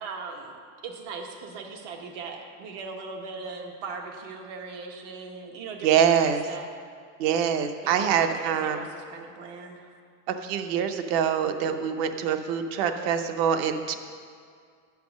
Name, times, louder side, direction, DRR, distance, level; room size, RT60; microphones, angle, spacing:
voice 1, 0.0-0.6 0.8-6.7 7.8-9.9, right 4 dB, 75° right, 2 dB, 1.4 m, -39 dB
voice 2, 5.8-6.4 7.2-8.8 10.3-13.9, right 8 dB, 55° right, 8 dB, 0.7 m, -24 dB
9.4 x 5.9 x 6.2 m, 2.1 s
cardioid pair, 180°, 37 cm